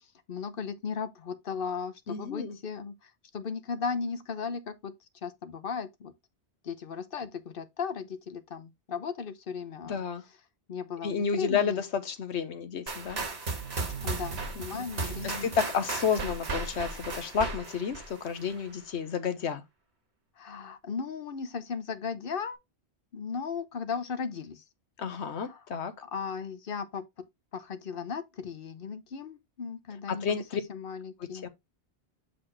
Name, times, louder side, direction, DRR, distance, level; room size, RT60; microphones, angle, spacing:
voice 1, 0.0-4.9 5.2-6.1 6.6-10.0 10.7-11.8 14.0-15.5 20.4-22.6 23.1-24.6 25.2-25.6 26.0-27.0 27.5-31.4, left 6 dB, 55° left, 1.0 m, -36 dB
voice 2, 2.1-2.6 9.8-10.2 11.0-13.2 14.6-19.6 25.0-25.9 30.1-30.6 31.4-31.5, left 6 dB, 80° left, 1.2 m, -31 dB
sound 1, 12.9-18.7, right 3 dB, 70° right, 1.8 m, -35 dB
7.7 x 4.1 x 3.2 m
omnidirectional pair, 1.1 m